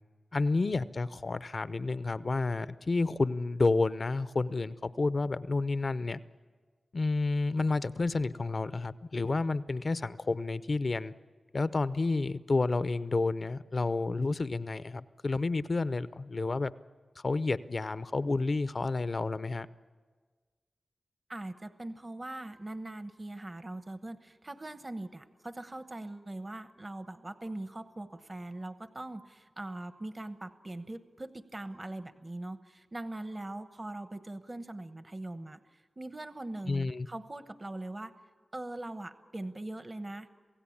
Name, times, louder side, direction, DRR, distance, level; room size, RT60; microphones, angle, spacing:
voice 1, 0.3-6.2 6.9-11.1 11.5-16.7 17.2-19.7 36.7-37.1, left 3 dB, 50° left, 14 dB, 0.7 m, -30 dB
voice 2, 21.3-38.1 38.5-40.3, right 2 dB, 35° right, 11 dB, 1.0 m, -41 dB
27.5 x 16.5 x 8.7 m, 1.5 s
cardioid pair, 60°, 0 cm